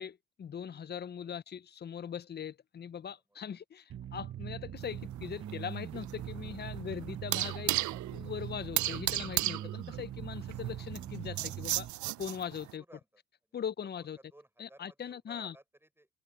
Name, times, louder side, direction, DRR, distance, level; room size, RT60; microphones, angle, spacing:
voice 1, 0.0-7.8 8.1-11.9 12.2-12.8 13.5-14.2 14.6-15.5, left 8 dB, 35° left, 0.6 m, -41 dB
sound 1, 3.9-11.9, right 11 dB, 45° right, 0.9 m, -42 dB
sound 2, 4.8-12.7, right 16 dB, 70° right, 0.5 m, -35 dB
voice 2, 12.7-13.2 13.5-16.1, right 1 dB, 10° right, 6.7 m, -59 dB
cardioid pair, 90°, 30 cm